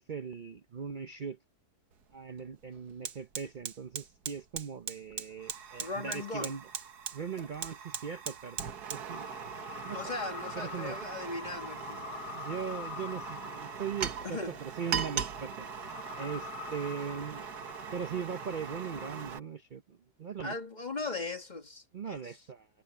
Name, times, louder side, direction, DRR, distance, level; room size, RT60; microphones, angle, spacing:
voice 1, 0.0-1.4 2.1-6.6 7.1-9.3 9.8-10.0 10.6-11.0 12.3-15.7 16.2-17.4 17.9-20.6 21.9-22.7, right 6 dB, 45° right, 0.6 m, -39 dB
Fire, 1.9-2.0 2.4-19.4, right 7 dB, 80° right, 1.8 m, -40 dB
voice 2, 5.8-6.6 9.9-12.0 14.2-14.6 20.4-22.3, left 3 dB, 30° left, 1.3 m, -38 dB
sound 1, 9.1-19.2, left 10 dB, 85° left, 1.3 m, -46 dB
omnidirectional pair, 1.7 m